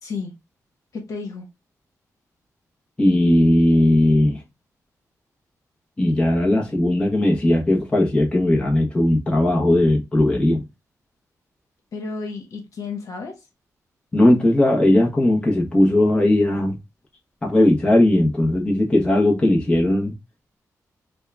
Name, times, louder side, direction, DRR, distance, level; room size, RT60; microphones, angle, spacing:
voice 1, 0.0-0.3 0.9-1.4 11.9-13.4, left 4 dB, 65° left, 1.2 m, -32 dB
voice 2, 3.0-4.4 6.0-10.7 14.1-16.8 17.4-20.1, left 1 dB, 15° left, 0.9 m, -18 dB
3.5 x 2.3 x 3.3 m
wide cardioid pair, 140°, 6 cm